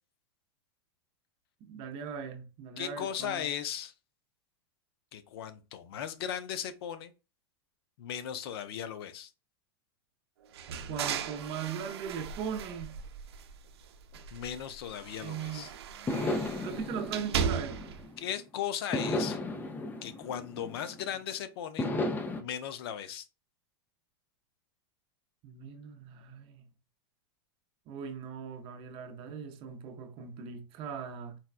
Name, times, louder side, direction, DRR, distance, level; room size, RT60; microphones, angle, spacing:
voice 1, 1.6-3.5 10.9-13.0 15.2-15.7 16.6-17.8 25.4-26.7 27.9-31.4, right 7 dB, 40° right, 0.6 m, -39 dB
voice 2, 2.8-3.9 5.1-7.1 8.0-9.3 14.3-15.7 18.2-19.4 20.0-21.9 22.4-23.2, left 9 dB, 75° left, 0.5 m, -37 dB
sound 1, 10.5-13.7 14.1-18.0, right 7 dB, 90° right, 0.5 m, -37 dB
sound 2, 15.5-15.6 16.1-18.3 18.9-21.2 21.8-22.4, left 2 dB, 15° left, 0.4 m, -34 dB
4.0 x 2.2 x 2.4 m
supercardioid pair, 135°, 13 cm